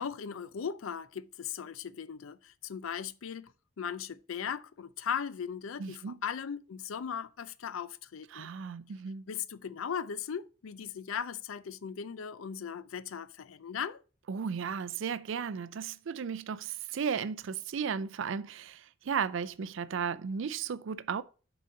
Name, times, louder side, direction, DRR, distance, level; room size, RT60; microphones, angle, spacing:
voice 1, 0.0-3.5 3.8-8.5 9.3-14.0, left 7 dB, 80° left, 0.4 m, -38 dB
voice 2, 5.8-6.2 8.3-9.2 14.3-21.2, right 6 dB, 70° right, 0.4 m, -35 dB
6.5 x 3.9 x 5.2 m
head